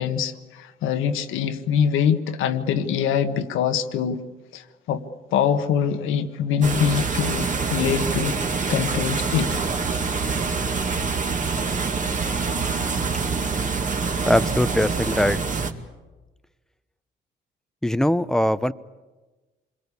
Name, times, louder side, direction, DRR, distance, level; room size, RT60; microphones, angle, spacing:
voice 1, 0.0-4.2 4.5-4.6 4.9-5.0 5.3-8.4 8.7-9.6, left 8 dB, 90° left, 9 dB, 1.5 m, -23 dB
sound 1, 6.6-15.7, right 4 dB, 40° right, 2.3 m, -25 dB
voice 2, 14.3-15.4 17.8-18.7, left 1 dB, 5° left, 14 dB, 0.8 m, -21 dB
27.5 x 22.0 x 8.5 m, 1.2 s
cardioid pair, 90°, 20 cm